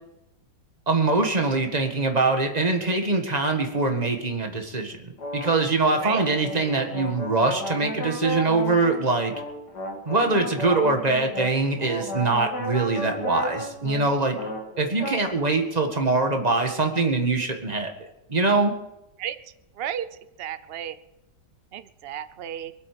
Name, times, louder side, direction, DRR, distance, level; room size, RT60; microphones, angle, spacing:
voice 1, 0.9-9.3 10.1-14.4 14.8-18.7, right 3 dB, 25° right, 4 dB, 1.8 m, -23 dB
sound 1, 5.2-15.3, left 1 dB, 65° left, 2.7 m, -34 dB
voice 2, 19.8-20.1 20.4-21.0 21.7-22.7, right 10 dB, 85° right, 13 dB, 0.5 m, -32 dB
23.5 x 8.4 x 6.8 m, 0.89 s
omnidirectional pair, 1.9 m